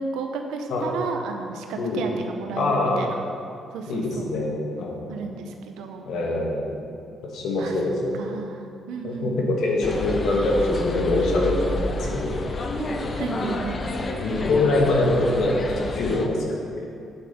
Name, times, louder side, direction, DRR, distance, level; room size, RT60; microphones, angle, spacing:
voice 1, 0.0-3.2 3.7-4.3 5.1-6.1 7.6-7.8 8.1-9.6 12.8-13.8, right 4 dB, 90° right, 4 dB, 0.9 m, -32 dB
voice 2, 2.6-3.0 3.9-5.1 6.1-6.7 7.2-8.2 9.0-12.4 13.1-13.2 14.2-15.5 15.9-16.9, left 2 dB, 75° left, -1 dB, 1.7 m, -24 dB
sound 1, 9.8-16.3, left 2 dB, 40° left, 0.8 m, -29 dB
8.9 x 7.3 x 4.4 m, 2.5 s
cardioid pair, 90°, 0 cm